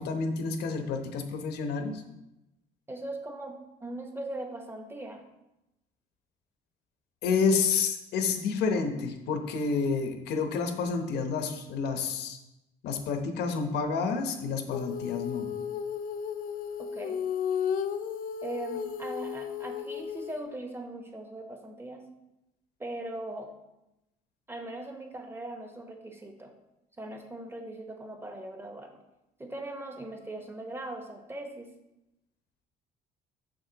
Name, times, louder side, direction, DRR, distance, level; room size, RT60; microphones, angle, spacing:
voice 1, 0.0-2.0 7.2-12.4 12.8-15.5, left 5 dB, 75° left, 5 dB, 0.9 m, -29 dB
voice 2, 2.9-5.2 16.8-17.2 18.4-22.1 22.8-23.5 24.5-26.5 27.0-28.9 29.4-31.7, right 1 dB, 15° right, 4 dB, 1.0 m, -40 dB
Female singing, 14.7-20.4, left 7 dB, 55° left, 0.5 m, -34 dB
6.7 x 6.3 x 2.9 m, 0.93 s
cardioid pair, 110°, 17 cm